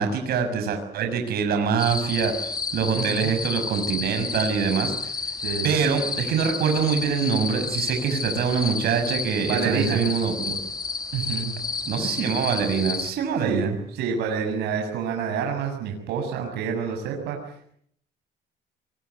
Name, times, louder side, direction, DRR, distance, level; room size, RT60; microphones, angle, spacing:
voice 1, 0.0-5.3 5.6-10.6 11.9-13.7, right 6 dB, 65° right, 6 dB, 6.4 m, -24 dB
sound 1, 1.8-13.1, left 4 dB, 25° left, 2.3 m, -31 dB
voice 2, 2.9-3.3 5.4-5.7 9.4-10.1 10.4-10.5 11.1-11.6 13.4-17.7, right 6 dB, 85° right, 2 dB, 6.7 m, -28 dB
25.0 x 23.5 x 9.5 m, 0.68 s
cardioid pair, 110°, 17 cm